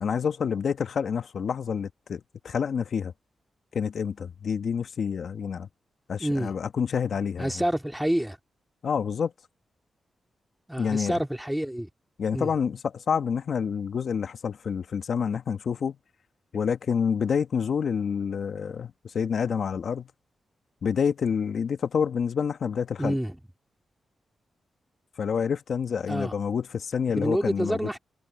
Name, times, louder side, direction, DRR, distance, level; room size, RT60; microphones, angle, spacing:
voice 1, 0.0-3.1 3.7-5.7 6.1-7.5 8.8-9.3 10.8-11.2 12.2-16.0 16.5-20.1 20.8-23.1 25.2-27.8, left 6 dB, 70° left, 1.3 m, -28 dB
voice 2, 6.2-6.5 7.4-8.4 10.7-11.9 12.3-12.5 23.0-23.4 26.1-26.3 27.2-28.0, equal, 5° right, 2.3 m, -27 dB
supercardioid pair, 50°, 0 cm